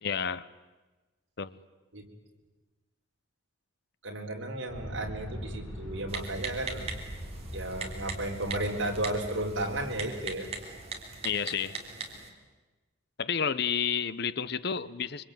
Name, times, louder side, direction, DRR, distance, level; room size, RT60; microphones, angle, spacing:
voice 1, 0.0-0.5 1.4-1.6 11.2-11.8 13.2-15.2, left 7 dB, 55° left, 16 dB, 0.8 m, -30 dB
voice 2, 4.0-6.9 7.5-10.5, right 1 dB, 65° right, 2 dB, 4.1 m, -33 dB
Aircraft, 4.7-11.0, equal, 85° left, 4.9 m, -42 dB
Typing, 6.1-12.3, right 4 dB, 30° right, 3.4 m, -41 dB
25.0 x 24.5 x 9.3 m, 1.2 s
head